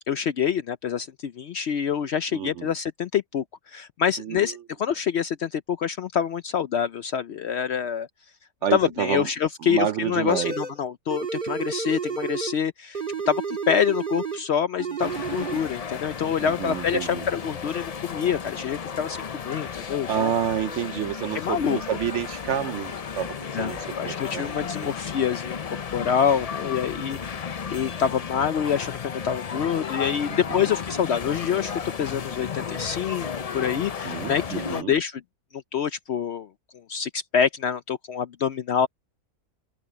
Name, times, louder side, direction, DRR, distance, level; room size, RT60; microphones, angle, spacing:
voice 1, 0.1-8.1 8.7-20.3 21.3-21.8 23.5-35.2 35.5-36.5 36.9-38.9, left 8 dB, 65° left, 0.7 m, -26 dB
voice 2, 2.3-2.7 4.2-4.5 8.6-9.3 9.6-10.5 16.4-17.2 20.1-24.5 24.8-24.9 30.5-30.7 34.0-34.9, right 10 dB, 65° right, 0.7 m, -29 dB
sound 1, 10.3-10.8 11.1-12.6 12.9-14.5 14.8-15.6, right 5 dB, 35° right, 1.8 m, -31 dB
sound 2, 15.0-34.8, left 6 dB, 80° left, 0.3 m, -34 dB
omnidirectional pair, 1.6 m